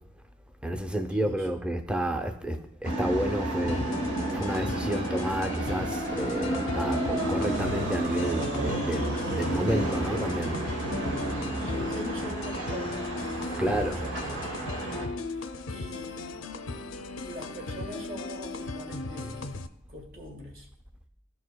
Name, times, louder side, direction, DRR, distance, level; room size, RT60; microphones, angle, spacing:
voice 1, 0.6-4.0 4.3-10.7 13.6-14.0, right 1 dB, 5° right, 0.5 m, -30 dB
sound 1, 2.8-15.1, right 1 dB, 80° right, 1.3 m, -31 dB
sound 2, 3.7-19.7, left 3 dB, 90° left, 0.5 m, -37 dB
voice 2, 11.6-13.1 13.4-15.2 15.7-16.5 16.9-19.5 19.9-20.7, equal, 50° right, 1.6 m, -43 dB
13.5 x 4.8 x 2.2 m
head